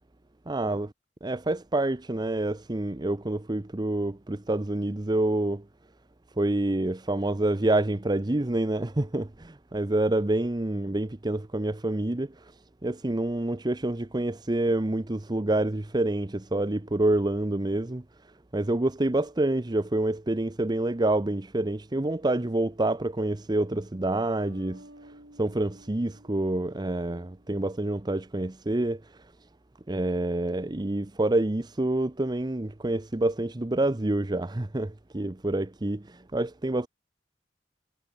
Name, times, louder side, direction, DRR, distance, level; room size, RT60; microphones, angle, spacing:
voice 1, 0.5-0.9 1.2-5.6 6.4-12.5 12.8-18.0 18.5-24.8 25.4-29.0 29.9-36.9, right 2 dB, 25° right, 0.8 m, -27 dB
sound 1, 24.4-27.8, right 1 dB, 75° right, 6.1 m, -52 dB
head